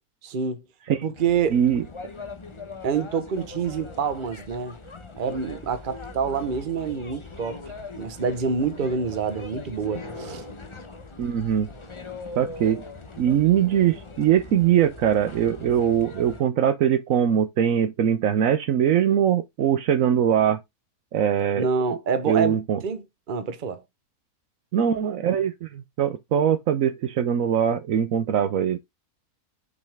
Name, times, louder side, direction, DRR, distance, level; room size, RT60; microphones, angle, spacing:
voice 1, 0.2-0.6 0.9-1.6 2.8-4.8 5.2-7.6 7.9-10.4 21.6-23.8, right 6 dB, 40° right, 1.0 m, -27 dB
sound 1, 1.1-16.4, left 3 dB, 25° left, 0.8 m, -40 dB
voice 2, 1.5-1.8 11.2-11.7 12.4-12.8 13.2-20.6 21.1-22.0 22.3-22.8 24.7-28.8, right 9 dB, 70° right, 1.0 m, -22 dB
6.3 x 5.4 x 3.4 m
omnidirectional pair, 1.5 m